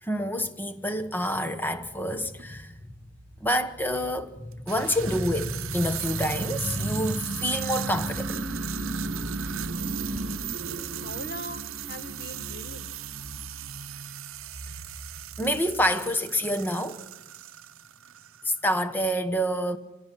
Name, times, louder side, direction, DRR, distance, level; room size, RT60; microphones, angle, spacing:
voice 1, 0.0-2.8 3.4-8.4 15.4-17.0 18.4-19.8, equal, 10° left, 1.0 m, -27 dB
sound 1, 1.3-1.4 2.4-2.5 4.5-18.6, right 14 dB, 75° right, 0.7 m, -38 dB
sound 2, 1.8-16.0, right 2 dB, 55° right, 1.3 m, -38 dB
voice 2, 10.9-12.9, left 1 dB, 50° left, 1.5 m, -41 dB
27.5 x 16.0 x 5.9 m
head